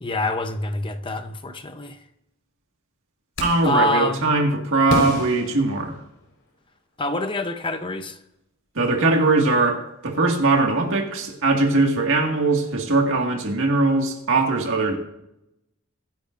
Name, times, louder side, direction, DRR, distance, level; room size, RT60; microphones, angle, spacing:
voice 1, 0.0-2.0 3.6-4.3 7.0-8.2, left 2 dB, 20° left, 0.8 m, -26 dB
sound 1, 3.4-3.8 4.9-6.4, left 1 dB, 55° left, 4.7 m, -29 dB
voice 2, 3.4-5.9 8.8-15.0, right 3 dB, 60° right, 2.0 m, -20 dB
24.0 x 10.5 x 2.6 m
head